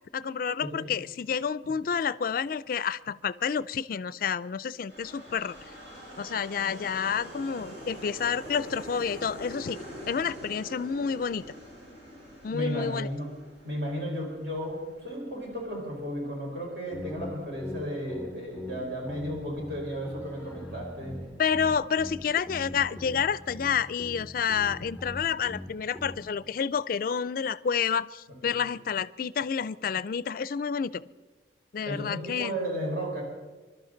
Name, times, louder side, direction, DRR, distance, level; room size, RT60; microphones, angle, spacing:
voice 1, 0.1-5.5 6.2-9.8 10.1-11.4 12.4-13.1 21.4-31.0 31.7-32.5, left 7 dB, 50° left, 18 dB, 0.4 m, -29 dB
sound 1, 4.9-23.2, equal, 85° right, 5.7 m, -47 dB
voice 2, 12.5-13.3 13.6-21.1 28.4-28.6 31.8-33.2, equal, 65° right, -2 dB, 4.7 m, -34 dB
sound 2, 16.9-26.4, left 1 dB, 10° right, 2.2 m, -42 dB
25.0 x 12.0 x 3.9 m, 1.3 s
head